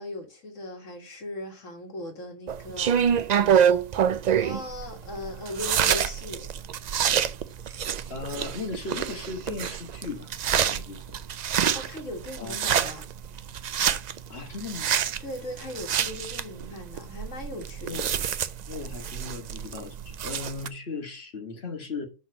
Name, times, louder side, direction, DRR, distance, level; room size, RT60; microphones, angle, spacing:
voice 1, 0.0-3.2 4.3-6.5 11.7-13.1 15.2-18.1, left 1 dB, 75° left, 2.1 m, -38 dB
sound 1, 2.5-20.7, right 8 dB, 85° right, 0.3 m, -27 dB
voice 2, 8.1-11.0 12.4-12.9 14.3-14.9 17.9-18.1 18.7-22.0, left 4 dB, 55° left, 1.7 m, -37 dB
6.2 x 4.0 x 5.1 m
omnidirectional pair, 1.3 m